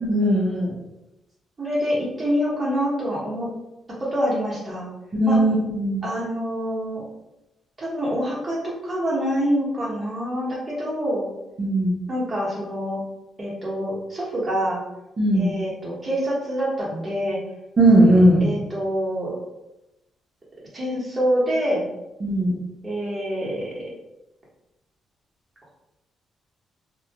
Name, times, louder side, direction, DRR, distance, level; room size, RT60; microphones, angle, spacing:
voice 1, 0.0-0.7 5.1-6.0 11.6-11.9 15.2-15.5 17.8-18.4 22.2-22.5, right 1 dB, 40° right, -7 dB, 0.6 m, -18 dB
voice 2, 1.6-3.5 4.0-4.9 5.3-5.4 6.0-7.0 7.8-11.3 12.1-13.0 13.4-14.8 15.3-17.4 18.4-19.3 20.7-21.9 22.8-23.7, equal, 20° right, -6 dB, 1.1 m, -26 dB
2.4 x 2.1 x 2.8 m, 0.94 s
cardioid pair, 120°, 0 cm